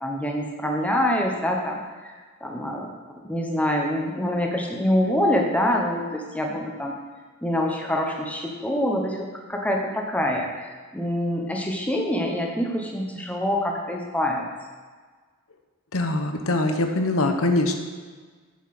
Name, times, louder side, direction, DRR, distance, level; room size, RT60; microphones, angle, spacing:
voice 1, 0.0-2.1 2.4-2.9 3.2-7.0 7.4-14.5, left 1 dB, 5° left, 0 dB, 1.1 m, -25 dB
voice 2, 15.9-17.7, left 2 dB, 75° left, 5 dB, 1.0 m, -23 dB
7.3 x 7.1 x 6.0 m, 1.5 s
head